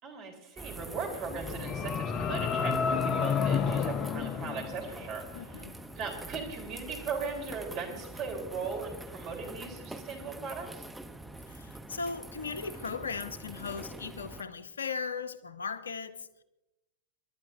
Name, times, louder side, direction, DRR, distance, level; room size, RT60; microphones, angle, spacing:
voice 1, 0.0-5.7 5.9-10.8, right 5 dB, 40° right, 4.1 m, -38 dB
sound 1, 0.6-14.4, right 1 dB, 5° right, 0.9 m, -45 dB
sound 2, 1.2-5.4, left 6 dB, 30° left, 0.7 m, -30 dB
voice 2, 5.3-5.8 11.4-16.4, left 5 dB, 75° left, 0.8 m, -38 dB
29.0 x 12.0 x 2.7 m
figure-of-eight pair, 100°, 0 cm